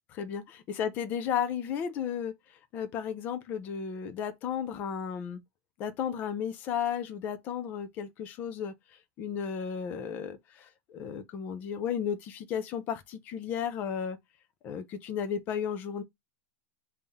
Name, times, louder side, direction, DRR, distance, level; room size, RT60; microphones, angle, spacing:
voice 1, 0.1-0.4 0.8-2.3 2.7-5.4 5.8-8.7 9.2-14.2 14.6-16.0, left 8 dB, 25° left, 0.5 m, -34 dB
3.6 x 2.8 x 3.4 m
supercardioid pair, 175°, 7 cm